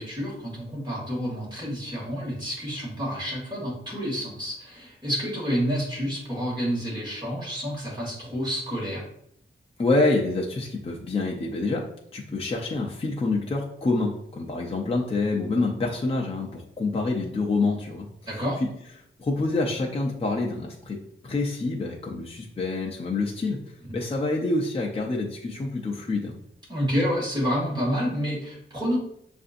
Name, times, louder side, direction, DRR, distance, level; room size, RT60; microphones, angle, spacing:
voice 1, 0.0-9.1 18.3-18.6 26.7-29.0, equal, 20° right, -5 dB, 1.8 m, -29 dB
voice 2, 9.8-18.1 18.3-18.7 19.2-23.6 23.9-26.4, left 3 dB, 30° left, -2 dB, 0.5 m, -27 dB
6.7 x 2.6 x 2.5 m, 0.70 s
wide cardioid pair, 140°, 20 cm